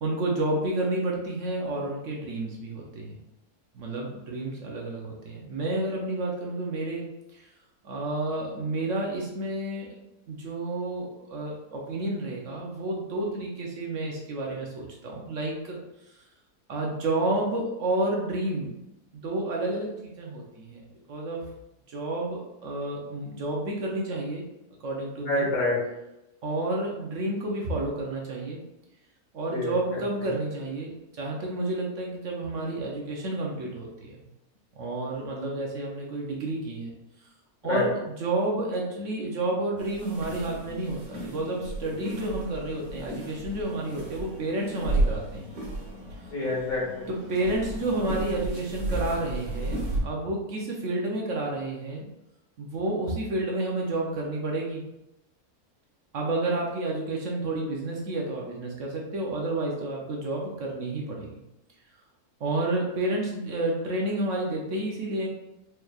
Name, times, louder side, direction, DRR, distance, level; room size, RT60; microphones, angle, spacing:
voice 1, 0.0-3.2 3.7-7.1 7.3-7.4 7.8-9.9 10.3-15.8 16.7-18.8 19.1-21.4 21.9-24.5 24.8-25.5 26.4-28.6 29.3-34.1 34.8-36.9 37.6-45.5 47.3-52.1 52.6-54.8 56.1-61.4 62.4-65.3, right 2 dB, 60° right, -2 dB, 1.0 m, -30 dB
voice 2, 25.2-25.8 29.5-30.0 37.6-37.9 46.3-47.1, left 2 dB, 70° left, -3 dB, 1.6 m, -27 dB
sound 1, 39.8-50.0, right 2 dB, 90° right, 1.8 m, -33 dB
4.5 x 3.2 x 2.4 m, 0.90 s
omnidirectional pair, 1.6 m